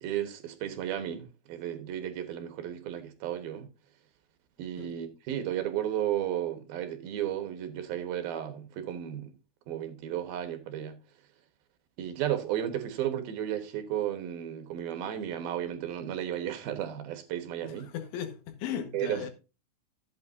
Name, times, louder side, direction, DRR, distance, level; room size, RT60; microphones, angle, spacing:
voice 1, 0.0-3.7 4.6-9.3 9.7-11.0 12.0-17.9 18.9-19.3, right 11 dB, 70° right, 2.5 m, -33 dB
voice 2, 4.8-5.1 17.6-19.3, left 9 dB, 75° left, 3.7 m, -37 dB
14.0 x 8.6 x 2.6 m
omnidirectional pair, 5.6 m